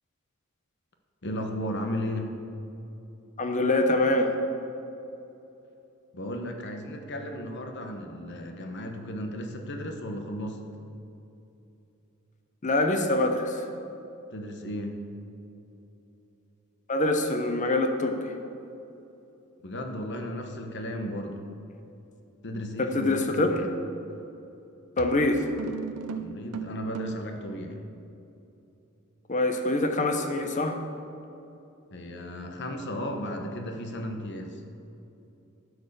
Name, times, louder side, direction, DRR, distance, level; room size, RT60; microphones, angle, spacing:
voice 1, 1.2-2.3 6.1-10.6 14.3-15.0 19.6-21.5 22.4-23.7 26.1-27.8 31.9-34.6, equal, 50° left, 4 dB, 1.0 m, -35 dB
voice 2, 3.4-4.3 12.6-13.6 16.9-18.3 22.8-23.6 25.0-25.5 29.3-30.8, left 2 dB, 35° left, 6 dB, 0.8 m, -25 dB
sound 1, 24.1-24.3 25.0-27.4, right 6 dB, 90° right, 0.5 m, -38 dB
12.5 x 4.7 x 6.6 m, 2.9 s
head